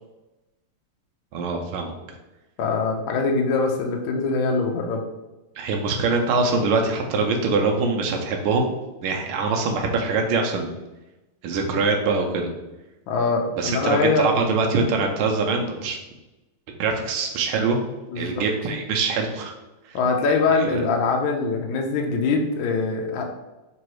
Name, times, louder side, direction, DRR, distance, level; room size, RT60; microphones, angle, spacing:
voice 1, 1.3-1.9 5.6-8.7 9.0-10.7 11.4-12.5 13.6-16.0 16.8-17.8 18.2-19.5 19.9-20.0 20.6-20.8, right 4 dB, 85° right, 2 dB, 1.5 m, -23 dB
voice 2, 2.6-5.0 13.1-14.3 18.1-18.4 19.9-23.3, left 4 dB, 75° left, 2 dB, 1.3 m, -23 dB
3.8 x 3.0 x 4.6 m, 1.0 s
omnidirectional pair, 2.3 m